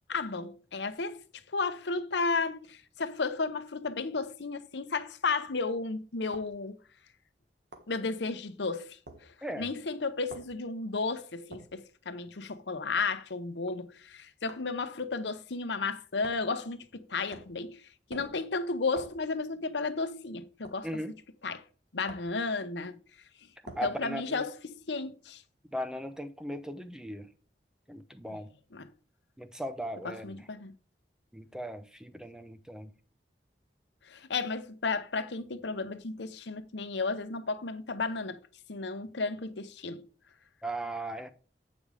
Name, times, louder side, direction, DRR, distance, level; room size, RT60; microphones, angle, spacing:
voice 1, 0.1-1.2 1.5-6.8 7.9-9.0 9.6-17.8 18.1-20.9 21.4-21.6 21.9-23.0 23.7-25.4 28.7-28.9 30.0-30.7 34.1-38.4 38.7-40.1, left 4 dB, 80° left, 0.8 m, -33 dB
sound 1, 6.3-6.5 7.7-7.9 9.1-9.2 10.3-10.5 11.5-11.7 13.0-13.2 14.5-14.7 16.2-16.5 17.3-17.6 18.1-18.4 18.9-19.2 20.6-20.8 22.1-22.4 23.6-23.9, right 1 dB, 70° right, 1.5 m, -47 dB
voice 2, 20.8-21.2 23.7-24.5 25.7-27.3 27.9-28.5 29.4-30.5 31.3-32.9 40.6-41.3, equal, 5° right, 0.6 m, -38 dB
8.6 x 5.2 x 4.9 m
head